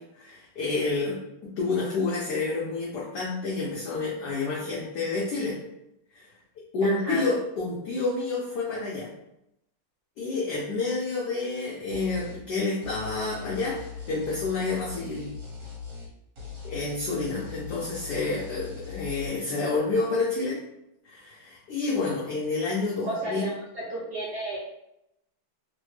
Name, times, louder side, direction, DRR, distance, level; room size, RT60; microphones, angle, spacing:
voice 1, 0.0-5.6 6.1-6.3 6.7-9.1 10.2-15.3 16.6-20.6 21.0-23.5, left 3 dB, 70° left, -4 dB, 1.0 m, -29 dB
voice 2, 6.8-7.3 23.0-24.6, right 1 dB, 70° right, -5 dB, 1.0 m, -32 dB
sound 1, 11.9-12.4 12.8-16.1 16.4-19.3, left 5 dB, 50° right, 1.4 m, -40 dB
3.3 x 2.1 x 3.1 m, 0.82 s
omnidirectional pair, 2.3 m